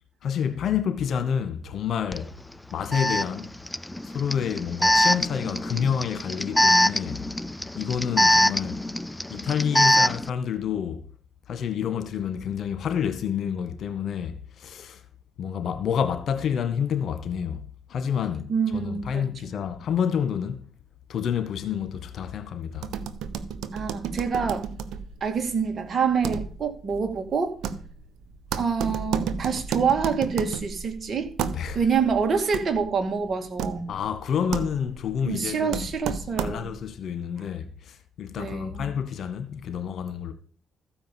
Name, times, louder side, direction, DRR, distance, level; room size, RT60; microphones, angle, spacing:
voice 1, 0.2-2.3 2.7-3.5 4.1-7.3 7.8-8.8 9.3-11.0 11.5-15.0 15.4-17.6 17.9-20.7 21.1-22.9 31.5-31.8 33.9-40.3, left 8 dB, 65° left, 1.8 m, -29 dB
Alarm, 2.1-2.2 2.9-10.3, equal, 10° left, 0.5 m, -23 dB
voice 2, 18.5-19.3 23.7-24.7 25.2-27.6 28.6-31.3 31.7-33.9 35.2-36.7 38.4-38.9, right 6 dB, 50° right, 2.4 m, -26 dB
sound 1, 22.8-36.9, right 7 dB, 75° right, 1.0 m, -34 dB
14.5 x 5.4 x 7.4 m
supercardioid pair, 65°, 0 cm